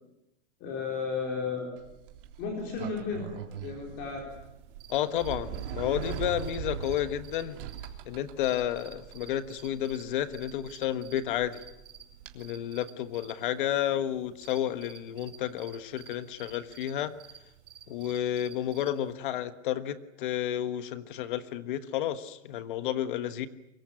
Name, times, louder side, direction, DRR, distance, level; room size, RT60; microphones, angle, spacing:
voice 1, 0.6-1.7 2.4-3.3 3.6-4.3, left 5 dB, 25° left, 1 dB, 4.2 m, -33 dB
Sliding door, 1.8-12.3, right 10 dB, 50° right, 3.5 m, -41 dB
sound 1, 4.3-19.1, right 8 dB, 85° right, 4.7 m, -53 dB
voice 2, 4.9-7.6 8.1-11.6 12.3-17.1 17.9-23.5, left 11 dB, 45° left, 12 dB, 1.4 m, -31 dB
24.0 x 22.5 x 9.8 m, 0.92 s
supercardioid pair, 180°, 35 cm